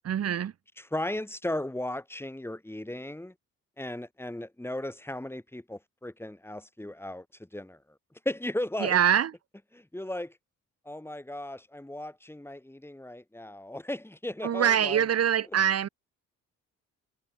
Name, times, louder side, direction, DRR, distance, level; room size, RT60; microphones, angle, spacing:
voice 1, 0.0-0.5 8.8-9.3 14.4-15.9, right 9 dB, 55° right, 1.5 m, -24 dB
voice 2, 0.8-3.3 3.8-7.2 7.5-7.8 8.3-9.0 9.7-10.3 10.9-15.1, left 1 dB, 10° left, 7.4 m, -36 dB
cardioid pair, 90°, 30 cm